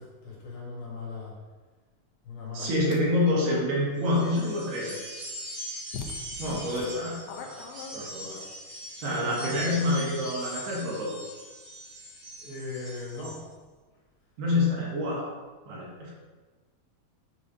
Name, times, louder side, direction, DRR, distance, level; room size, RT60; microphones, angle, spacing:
voice 1, 0.0-1.3 2.2-3.1 9.1-9.6 12.4-13.4, left 3 dB, 65° left, -4 dB, 3.0 m, -39 dB
voice 2, 2.5-5.0 6.4-8.4 9.0-11.2 14.4-15.3 15.7-16.1, left 1 dB, 80° right, -5 dB, 3.3 m, -27 dB
sound 1, 2.6-3.0 5.3-5.4 5.9-8.5, left 5 dB, 85° left, 2.1 m, -42 dB
sound 2, 4.0-13.4, equal, 55° right, 1.7 m, -41 dB
7.3 x 2.7 x 5.0 m, 1.3 s
omnidirectional pair, 4.6 m